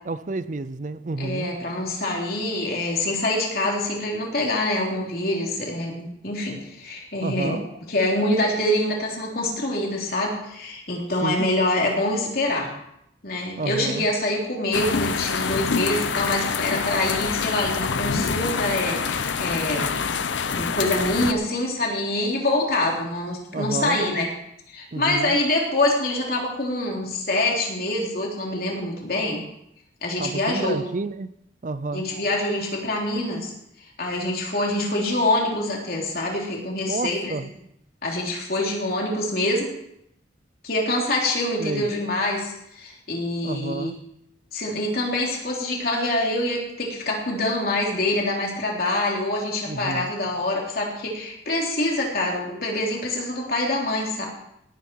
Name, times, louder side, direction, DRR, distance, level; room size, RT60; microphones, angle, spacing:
voice 1, 0.1-1.5 7.2-7.6 11.2-11.5 13.6-14.1 23.5-24.0 24.9-25.4 30.2-31.3 31.6-32.1 36.9-37.5 41.6-41.9 43.4-44.0 49.7-50.1, right 3 dB, 45° right, 14 dB, 0.5 m, -30 dB
voice 2, 1.2-7.6 7.9-12.7 13.2-20.2 20.5-24.3 24.7-29.4 30.0-30.8 31.9-33.5 34.0-37.5 38.0-39.7 40.6-43.9 44.5-54.3, left 1 dB, 55° left, -1 dB, 3.5 m, -25 dB
sound 1, 14.7-21.3, left 5 dB, 90° left, 0.8 m, -26 dB
18.0 x 9.2 x 4.7 m, 0.79 s
head